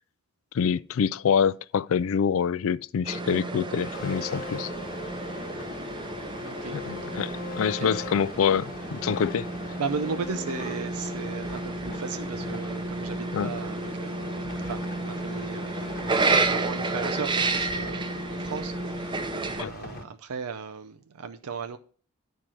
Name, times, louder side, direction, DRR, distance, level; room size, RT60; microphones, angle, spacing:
voice 1, 0.5-4.7 6.7-9.5 13.3-13.5 19.6-19.7, left 7 dB, 65° left, 0.3 m, -26 dB
sound 1, 3.0-19.6, right 3 dB, 20° right, 0.6 m, -31 dB
sound 2, 3.9-20.0, left 3 dB, 40° left, 1.1 m, -41 dB
voice 2, 9.8-19.3 19.5-21.8, right 5 dB, 90° right, 0.5 m, -36 dB
9.9 x 4.6 x 6.0 m
head